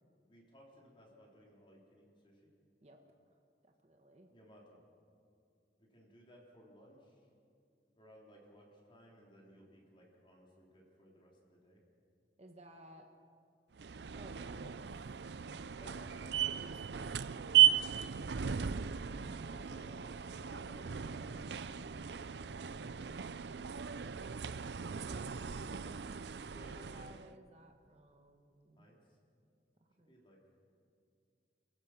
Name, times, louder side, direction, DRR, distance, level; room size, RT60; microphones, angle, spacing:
voice 1, 0.3-2.5 4.3-4.8 5.8-7.3 8.0-11.8 15.8-16.5 19.5-22.9 26.5-27.1 28.8-29.0 30.1-30.4, equal, 30° left, -2 dB, 3.8 m, -60 dB
voice 2, 3.3-4.3 12.4-13.1 14.1-15.4 16.1-17.2 17.9-19.3 24.9-25.4 26.7-28.9 29.8-30.1, right 1 dB, 35° right, 3 dB, 1.5 m, -58 dB
sound 1, 13.8-27.3, right 9 dB, 70° right, 0.5 m, -35 dB
28.5 x 15.5 x 6.1 m, 2.4 s
head